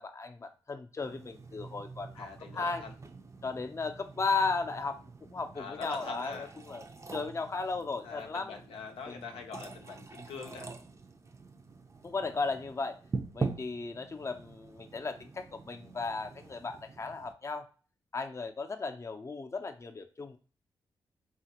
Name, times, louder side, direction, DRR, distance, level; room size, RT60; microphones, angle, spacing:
voice 1, 0.0-2.3 2.5-2.8 3.4-5.0 5.3-8.5 9.1-9.3 12.0-13.0 13.3-17.7 18.1-20.4, left 4 dB, 30° left, 6 dB, 0.5 m, -35 dB
sound 1, 1.0-17.3, right 4 dB, 30° right, 0.5 m, -44 dB
voice 2, 2.2-2.9 5.6-6.5 8.0-10.7, left 5 dB, 85° left, 4 dB, 0.5 m, -43 dB
3.0 x 2.4 x 2.9 m, 0.36 s
supercardioid pair, 50°, 9 cm